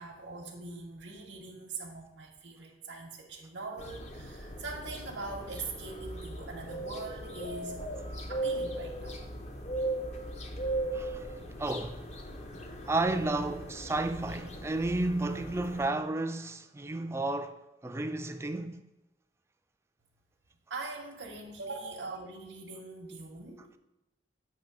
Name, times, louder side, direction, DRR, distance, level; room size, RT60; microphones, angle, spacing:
voice 1, 0.0-7.8 8.3-9.1 20.7-23.7, right 3 dB, 85° right, 0.8 m, -42 dB
sound 1, 3.8-15.8, right 1 dB, 40° left, 0.6 m, -38 dB
voice 2, 10.9-11.3 11.6-12.1 12.9-18.8, right 2 dB, 15° right, 0.3 m, -32 dB
7.6 x 3.0 x 5.9 m
head